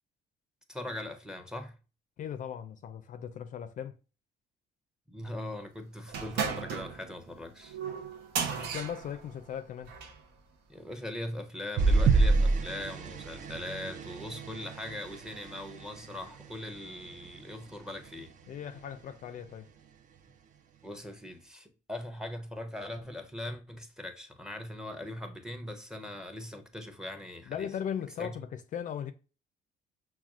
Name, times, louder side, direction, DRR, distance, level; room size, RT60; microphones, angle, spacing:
voice 1, 0.7-1.8 5.1-7.8 10.7-18.3 20.8-27.7 28.2-28.4, left 1 dB, 5° right, 0.6 m, -40 dB
voice 2, 2.2-4.0 8.4-9.9 18.5-19.7 27.5-29.1, left 9 dB, 50° left, 0.4 m, -38 dB
sound 1, 6.1-10.2, right 6 dB, 80° right, 0.8 m, -36 dB
sound 2, 11.8-16.5 17.0-17.3 17.6-17.7, right 3 dB, 50° right, 0.5 m, -28 dB
5.7 x 2.3 x 2.4 m
cardioid pair, 110°, 17 cm